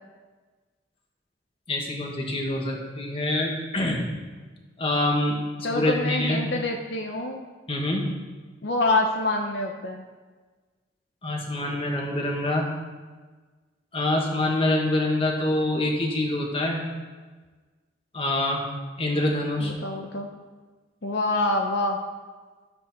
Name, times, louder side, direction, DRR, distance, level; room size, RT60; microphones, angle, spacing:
voice 1, 1.7-4.1 4.8-6.4 7.7-8.1 11.2-12.7 13.9-16.9 18.1-18.6 19.0-19.7, left 1 dB, 30° left, -1 dB, 1.7 m, -25 dB
voice 2, 5.6-7.4 8.6-10.0 19.6-20.3 21.0-22.0, left 2 dB, 65° left, 1 dB, 0.9 m, -26 dB
13.0 x 7.8 x 4.4 m, 1.3 s
head